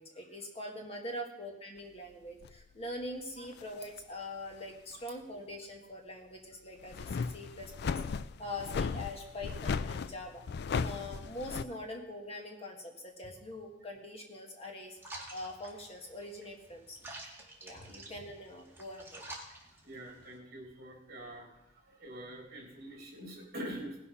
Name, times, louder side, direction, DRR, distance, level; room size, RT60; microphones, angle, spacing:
voice 1, 0.0-8.0 8.4-10.4 10.7-17.0 17.6-19.2, left 1 dB, 30° left, 1 dB, 1.8 m, -43 dB
sound 1, 2.4-2.6 3.4-4.0 4.5-4.6 6.8-11.6, left 5 dB, 60° left, 0.4 m, -36 dB
sound 2, 15.0-20.4, right 2 dB, 10° right, 2.2 m, -49 dB
voice 2, 19.8-21.5 21.7-24.0, right 1 dB, 55° right, 0 dB, 3.3 m, -45 dB
18.5 x 6.3 x 5.5 m, 0.86 s
head